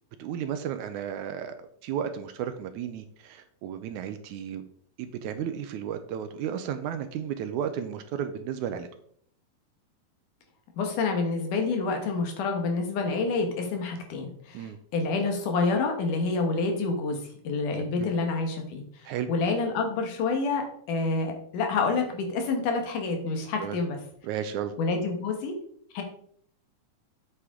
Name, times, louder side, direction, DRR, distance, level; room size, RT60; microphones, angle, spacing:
voice 1, 0.2-4.6 5.0-8.9 14.5-14.8 17.8-18.1 19.1-19.3 23.6-23.8 24.2-24.7, right 9 dB, 80° right, 9 dB, 1.9 m, -33 dB
voice 2, 10.8-24.0 24.8-25.6 25.9-26.0, left 4 dB, 75° left, 4 dB, 2.9 m, -28 dB
8.5 x 8.0 x 3.7 m, 0.64 s
omnidirectional pair, 3.8 m